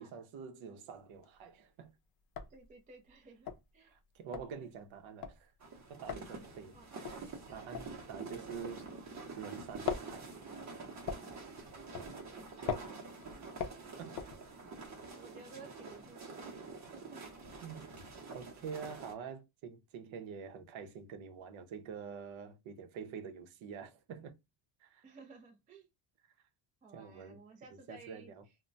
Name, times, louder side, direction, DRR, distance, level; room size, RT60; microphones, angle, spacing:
voice 1, 0.0-1.9 3.8-5.5 5.9-6.8 7.5-8.8 9.4-10.3 14.0-14.2 16.9-17.0 17.6-17.9 18.3-24.3 24.8-25.0 26.9-27.4 27.7-28.4, right 6 dB, 70° right, 0.7 m, -46 dB
sound 1, 1.0-1.5 1.8-1.9 2.2-9.3 9.5-14.9, left 7 dB, 50° left, 0.5 m, -42 dB
voice 2, 2.5-3.9 6.7-6.9 12.6-13.0 13.3-13.4 13.7-14.1 14.9-16.6 17.1-17.2 17.5-17.6 25.0-25.9 26.8-28.3, right 3 dB, 20° right, 0.3 m, -56 dB
sound 2, 5.6-19.1, right 4 dB, 35° right, 0.8 m, -47 dB
2.1 x 2.1 x 3.8 m
cardioid pair, 175°, 48 cm